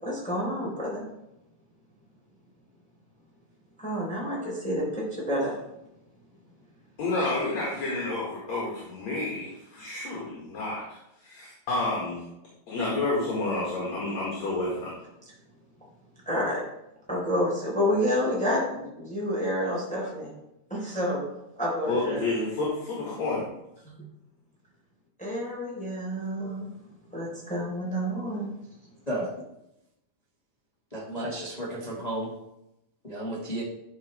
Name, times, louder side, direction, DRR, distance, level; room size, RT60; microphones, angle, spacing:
voice 1, 0.0-1.0 3.8-5.5 16.2-16.6 17.1-20.3 20.7-21.2 21.6-22.3 23.8-24.0 25.2-26.7 27.1-28.5, equal, ahead, -5 dB, 3.3 m, -29 dB
voice 2, 7.0-12.2 12.7-14.9 21.9-23.4, left 2 dB, 60° left, -5 dB, 3.0 m, -30 dB
voice 3, 30.9-32.3 33.0-33.6, right 1 dB, 25° left, -5 dB, 1.0 m, -32 dB
12.0 x 6.1 x 3.3 m, 0.85 s
omnidirectional pair, 3.7 m